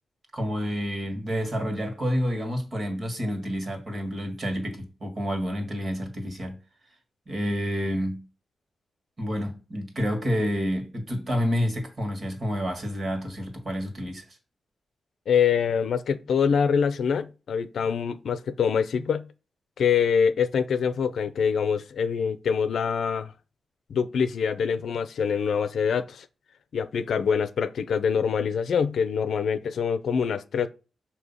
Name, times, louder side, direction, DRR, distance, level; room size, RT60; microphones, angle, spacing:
voice 1, 0.3-6.6 7.3-8.2 9.2-14.4, equal, 35° right, 1.7 m, -29 dB
voice 2, 15.3-19.3 19.8-23.3 23.9-26.3 26.7-30.7, left 6 dB, 70° left, 0.6 m, -25 dB
6.5 x 2.9 x 5.5 m
wide cardioid pair, 135°, 0 cm